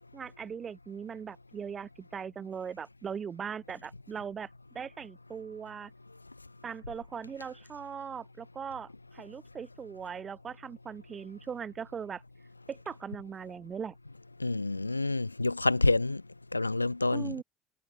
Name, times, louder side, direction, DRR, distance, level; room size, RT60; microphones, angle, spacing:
voice 1, 0.1-4.5 4.7-5.9 6.6-12.2 12.7-13.9 17.1-17.4, right 7 dB, 30° right, 1.0 m, -40 dB
voice 2, 14.4-16.2 16.5-17.4, left 2 dB, 90° left, 0.5 m, -27 dB
figure-of-eight pair, 65°, 0 cm